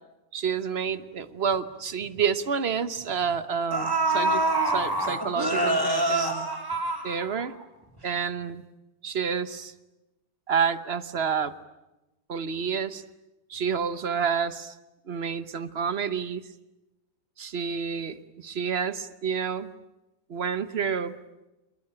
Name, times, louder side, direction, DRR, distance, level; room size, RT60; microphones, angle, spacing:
voice 1, 0.3-6.5 7.0-7.5 8.0-8.6 9.0-9.7 10.5-11.5 12.3-13.0 13.5-14.7 15.1-16.4 17.4-19.7 20.3-21.2, right 6 dB, 40° right, 14 dB, 1.1 m, -29 dB
sound 1, 1.5-1.6 2.0-2.2 3.2-3.3 3.7-7.6 8.0-8.1, right 2 dB, 10° right, 3.0 m, -26 dB
27.0 x 22.0 x 8.8 m, 0.99 s
omnidirectional pair, 1.9 m